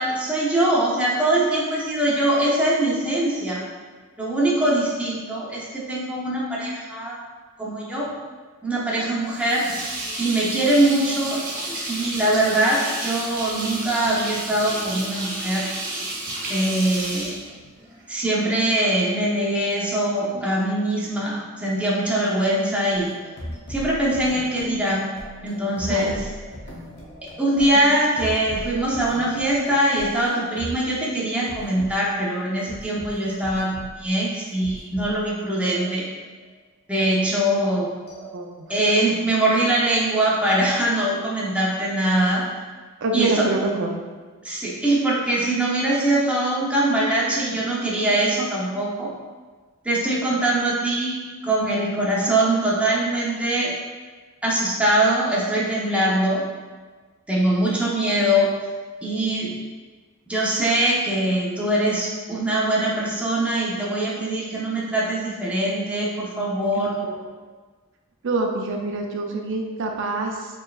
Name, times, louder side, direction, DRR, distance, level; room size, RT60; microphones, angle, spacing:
voice 1, 0.0-3.6 4.2-7.2 7.6-8.1 8.6-9.6 10.2-11.4 11.9-15.7 16.5-17.3 18.1-23.1 23.7-25.1 25.4-26.3 27.4-36.1 36.9-37.9 38.7-42.5 43.1-43.5 44.4-49.1 49.8-51.2 51.4-53.7 54.4-56.4 57.3-58.5 59.0-59.5 60.3-66.9, right 1 dB, 5° right, -6 dB, 0.7 m, -22 dB
sound 1, 9.3-18.1, right 2 dB, 40° right, 1.0 m, -31 dB
sound 2, 22.9-30.9 31.5-31.9 32.7-34.1 34.5-35.3 35.7-36.5 38.1-38.9 40.5-41.3, equal, 50° left, 0.8 m, -39 dB
voice 2, 38.3-38.7 43.0-43.9 66.7-67.2 68.2-70.5, right 2 dB, 60° right, 2 dB, 0.5 m, -26 dB
4.5 x 3.2 x 2.4 m, 1.4 s
head